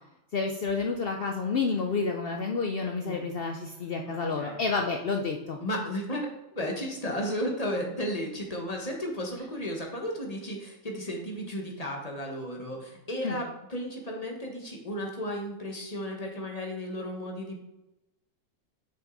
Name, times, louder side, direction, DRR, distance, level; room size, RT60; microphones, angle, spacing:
voice 1, 0.3-5.6 13.2-13.4, left 4 dB, 55° left, 3 dB, 0.7 m, -29 dB
voice 2, 4.1-4.7 5.6-17.6, equal, 30° left, 1 dB, 1.4 m, -34 dB
6.3 x 5.8 x 4.0 m, 0.93 s
omnidirectional pair, 1.4 m